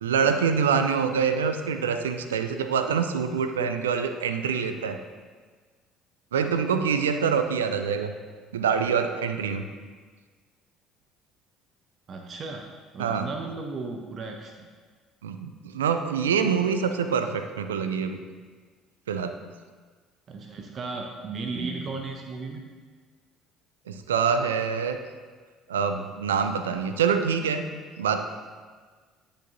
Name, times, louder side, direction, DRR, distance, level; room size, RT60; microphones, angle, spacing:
voice 1, 0.0-5.0 6.3-8.1 8.5-9.6 13.0-13.3 15.2-18.2 19.1-19.3 23.9-25.0 25.7-27.7 28.0-28.3, right 6 dB, 85° right, 8 dB, 0.4 m, -25 dB
voice 2, 12.1-12.6 12.9-14.7 20.3-22.6, right 3 dB, 45° right, 3 dB, 0.7 m, -35 dB
9.9 x 6.7 x 2.7 m, 1.5 s
hypercardioid pair, 60°, 0 cm